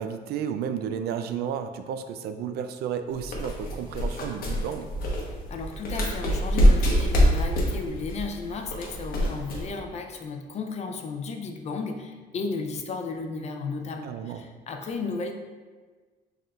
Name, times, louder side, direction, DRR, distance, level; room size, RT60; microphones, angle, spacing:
voice 1, 0.0-4.9 14.0-14.4, right 8 dB, 70° right, 9 dB, 0.4 m, -32 dB
sound 1, 3.1-9.7, equal, 60° left, 1.0 m, -25 dB
voice 2, 5.3-15.3, left 4 dB, 40° left, 4 dB, 0.5 m, -34 dB
5.4 x 3.6 x 2.4 m, 1.4 s
cardioid pair, 110°, 17 cm